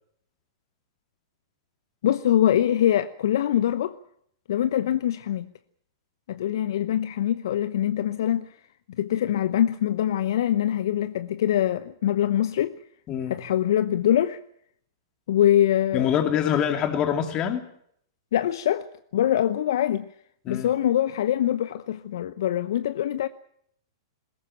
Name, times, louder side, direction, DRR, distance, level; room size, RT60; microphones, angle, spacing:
voice 1, 2.0-3.9 4.5-5.5 6.3-8.5 9.0-12.8 13.3-14.4 15.3-16.1 18.3-18.9 19.1-20.0 20.5-23.3, left 11 dB, 60° left, 0.8 m, -23 dB
voice 2, 15.9-17.6 20.4-20.7, left 9 dB, 30° left, 3.0 m, -25 dB
21.0 x 17.5 x 9.1 m
figure-of-eight pair, 105°, 2 cm